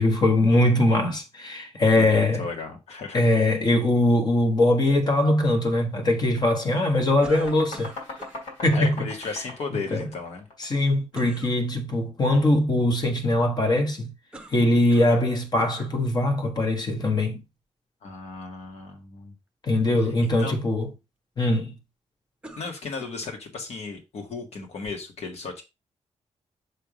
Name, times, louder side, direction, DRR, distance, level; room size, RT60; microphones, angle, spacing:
voice 1, 0.0-2.5 3.1-7.9 8.6-9.1 9.7-10.1 10.6-14.1 14.5-17.4 19.6-20.9 21.4-21.8, left 1 dB, 35° left, 1.3 m, -22 dB
voice 2, 2.0-3.2 8.7-10.5 18.0-19.3 20.0-20.5 22.6-25.6, left 4 dB, 60° left, 1.7 m, -35 dB
sound 1, 5.4-5.6 5.9-10.9, left 2 dB, 80° left, 3.0 m, -41 dB
sound 2, 7.2-8.4 11.1-11.6 14.3-15.3 15.6-16.0 16.8-16.9 22.4-23.3, right 2 dB, 10° right, 0.9 m, -44 dB
6.7 x 3.6 x 4.9 m
wide cardioid pair, 170°, 12 cm